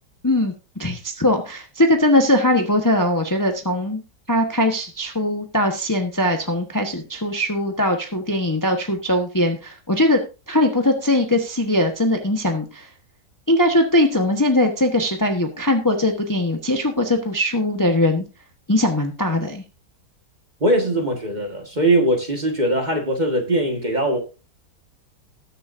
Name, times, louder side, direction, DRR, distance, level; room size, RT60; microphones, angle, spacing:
voice 1, 0.8-4.0 4.3-10.2 10.5-12.9 13.5-18.2 18.7-19.6, left 1 dB, 15° left, 1.0 m, -20 dB
voice 2, 20.6-24.2, right 1 dB, 25° right, 1.7 m, -21 dB
19.5 x 6.7 x 2.6 m
omnidirectional pair, 1.8 m